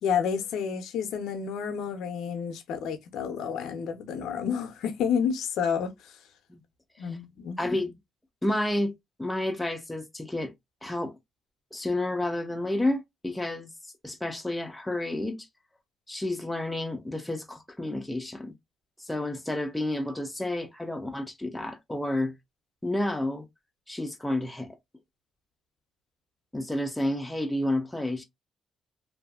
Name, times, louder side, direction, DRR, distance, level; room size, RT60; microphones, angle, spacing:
voice 1, 0.0-6.2 7.0-7.6, left 7 dB, 80° left, 0.5 m, -30 dB
voice 2, 7.6-7.9 8.4-8.9 9.2-10.5 10.8-11.1 11.7-13.7 14.0-15.5 16.1-18.5 19.0-22.3 22.8-23.5 23.9-24.8 26.5-28.2, left 1 dB, 10° left, 0.5 m, -30 dB
2.6 x 2.5 x 2.2 m
cardioid pair, 90°, 0 cm